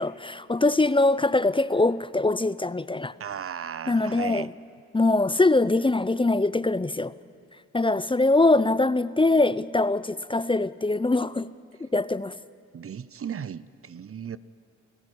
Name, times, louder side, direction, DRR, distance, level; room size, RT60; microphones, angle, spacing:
voice 1, 0.0-3.1 3.9-4.5 4.9-7.1 7.7-11.5 11.8-12.3, left 2 dB, 15° left, 0.7 m, -23 dB
voice 2, 3.2-4.5 12.7-14.4, right 8 dB, 50° right, 0.7 m, -36 dB
28.0 x 15.0 x 9.9 m
cardioid pair, 55°, 29 cm